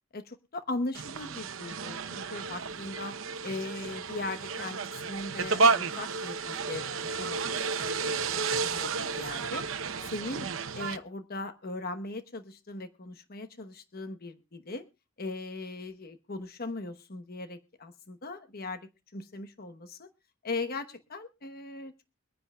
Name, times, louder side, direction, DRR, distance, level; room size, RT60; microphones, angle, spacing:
voice 1, 0.1-3.2 3.4-9.6 10.1-10.5 10.7-14.8 15.2-20.1 20.4-21.9, left 2 dB, 50° left, 8 dB, 1.0 m, -39 dB
sound 1, 0.9-11.0, right 4 dB, 70° right, 0.8 m, -31 dB
24.0 x 9.7 x 2.3 m, 0.28 s
head